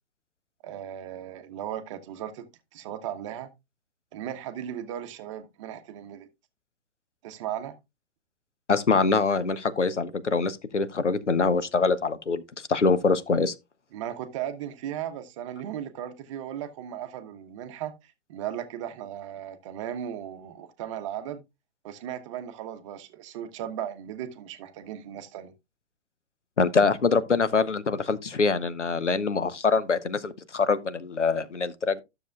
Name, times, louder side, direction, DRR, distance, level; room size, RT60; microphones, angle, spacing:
voice 1, 0.6-3.5 4.1-6.3 7.2-7.8 13.9-21.4 21.8-25.5, right 10 dB, 25° right, 0.8 m, -36 dB
voice 2, 8.7-12.4 12.7-13.5 26.6-32.0, left 4 dB, 80° left, 0.8 m, -24 dB
12.5 x 6.8 x 2.3 m
figure-of-eight pair, 120°, 35 cm